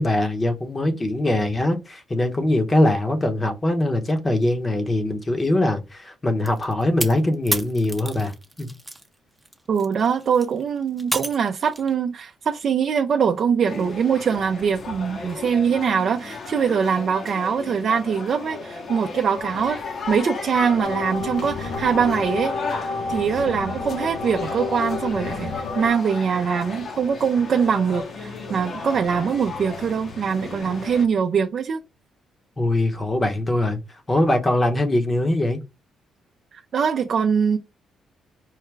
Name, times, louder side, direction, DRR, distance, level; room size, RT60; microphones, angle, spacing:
voice 1, 0.0-8.3 8.6-8.7 32.6-35.6, left 1 dB, 25° left, 0.9 m, -22 dB
sound 1, 6.5-9.1 9.4-11.9, right 1 dB, 5° right, 0.6 m, -31 dB
voice 2, 9.7-19.8 20.1-22.5 23.1-31.8 36.5-37.6, right 6 dB, 55° right, 0.4 m, -23 dB
sound 2, 13.7-31.1, left 4 dB, 55° left, 0.9 m, -35 dB
sound 3, 20.8-25.9, left 4 dB, 85° left, 0.8 m, -30 dB
4.7 x 2.2 x 3.3 m
cardioid pair, 90°, 0 cm